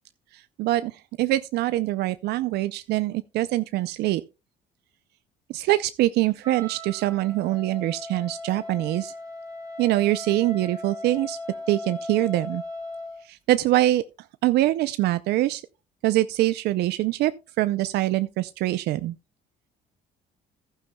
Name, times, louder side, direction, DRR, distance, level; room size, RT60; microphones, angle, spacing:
voice 1, 0.3-4.2 5.5-9.1 9.8-11.4 11.7-12.6 13.2-14.0 14.4-15.6 16.0-17.3 17.6-19.2, right 15 dB, 75° right, 0.5 m, -24 dB
Wind instrument woodwind instrument, 6.4-13.2, left 2 dB, 20° right, 2.4 m, -38 dB
14.5 x 11.5 x 2.2 m
cardioid pair, 110°, 17 cm